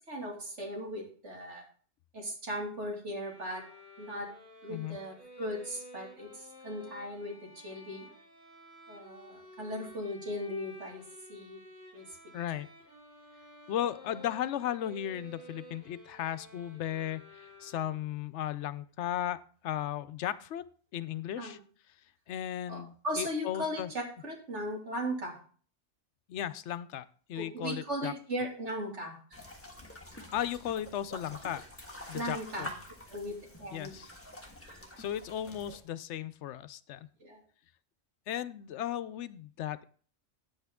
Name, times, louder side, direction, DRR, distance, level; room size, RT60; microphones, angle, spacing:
voice 1, 0.1-1.6 2.1-3.7 4.0-4.3 4.6-8.1 8.9-11.0 11.3-11.6 11.9-12.0 21.4-21.6 22.7-25.4 27.3-29.2 32.1-32.7 33.1-33.9 34.6-34.8 37.2-37.4, equal, 70° right, -1 dB, 2.7 m, -38 dB
sound 1, 3.2-18.1, left 1 dB, 55° right, 4.5 m, -52 dB
voice 2, 12.3-12.7 13.7-19.4 19.6-20.6 20.9-21.6 22.3-23.9 26.3-28.1 30.3-31.6 32.1-32.7 33.7-34.1 35.0-37.1 38.3-39.8, left 11 dB, 75° left, 14 dB, 0.9 m, -36 dB
sound 2, 29.3-35.8, equal, 10° left, 1.4 m, -47 dB
9.4 x 8.1 x 3.6 m, 0.43 s
omnidirectional pair, 1.2 m